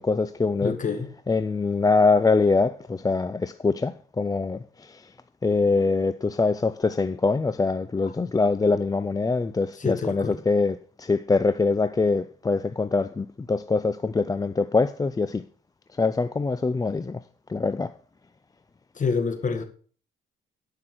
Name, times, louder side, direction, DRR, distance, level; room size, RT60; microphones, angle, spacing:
voice 1, 0.0-5.1 5.4-15.4 15.9-17.2 17.5-17.9, left 3 dB, 20° left, 0.5 m, -24 dB
voice 2, 0.6-1.1 9.8-10.4 19.0-19.7, left 5 dB, 40° left, 1.9 m, -26 dB
11.0 x 5.8 x 6.1 m
cardioid pair, 90°, 20 cm